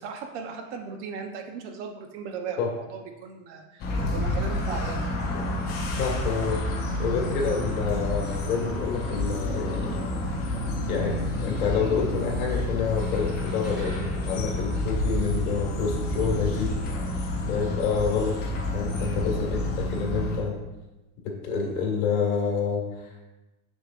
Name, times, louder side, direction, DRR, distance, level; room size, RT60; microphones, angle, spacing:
voice 1, 0.0-5.1, right 5 dB, 50° right, 4 dB, 0.9 m, -37 dB
sound 1, 3.8-20.4, left 1 dB, 20° left, 0.8 m, -29 dB
voice 2, 6.0-10.0 10.9-16.7 17.4-18.3 18.7-20.6 21.2-23.3, left 5 dB, 75° left, 0 dB, 1.8 m, -28 dB
sound 2, 12.9-15.5, equal, ahead, 1.5 m, -46 dB
6.5 x 6.4 x 2.5 m, 1.0 s
supercardioid pair, 170°, 43 cm